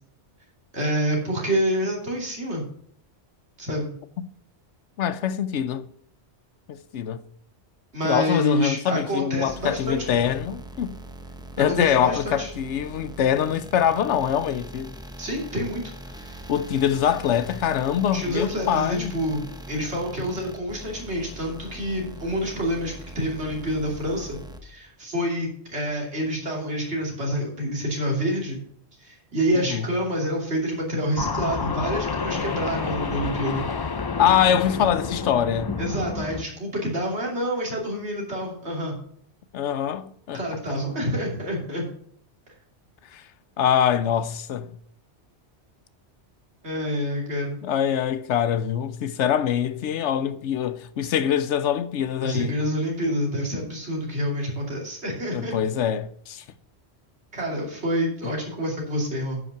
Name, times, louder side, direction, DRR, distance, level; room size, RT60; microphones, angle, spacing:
voice 1, 0.7-2.6 3.6-3.9 7.9-10.2 11.6-12.5 15.2-16.5 18.1-28.6 29.0-33.6 35.8-39.0 40.3-41.8 46.6-47.6 52.2-55.6 57.3-59.4, equal, 70° right, 3.1 m, -27 dB
voice 2, 5.0-5.9 6.7-7.2 8.0-10.9 11.6-15.0 16.5-19.1 29.7-29.9 34.2-35.8 39.5-40.4 43.1-43.2 43.6-44.7 47.6-52.6 55.3-56.4, left 9 dB, 85° left, 1.0 m, -24 dB
sound 1, 9.5-24.6, right 1 dB, 5° right, 0.7 m, -41 dB
sound 2, 31.2-36.4, left 5 dB, 40° left, 0.3 m, -29 dB
9.5 x 5.6 x 5.9 m
omnidirectional pair, 1.2 m